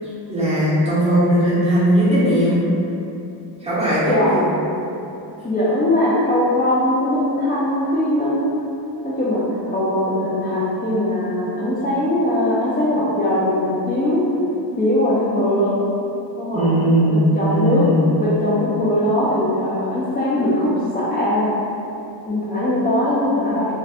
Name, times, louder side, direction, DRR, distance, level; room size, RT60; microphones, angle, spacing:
voice 1, 0.3-2.7 3.6-4.4 16.5-18.0, equal, 15° right, -11 dB, 0.9 m, -18 dB
voice 2, 4.1-4.5 5.4-8.5 9.0-14.3 14.8-15.8 16.4-16.7 17.1-17.9 18.2-21.5 22.3-23.7, left 1 dB, 20° left, -10 dB, 0.4 m, -20 dB
2.6 x 2.1 x 4.0 m, 2.8 s
wide cardioid pair, 150°, 43 cm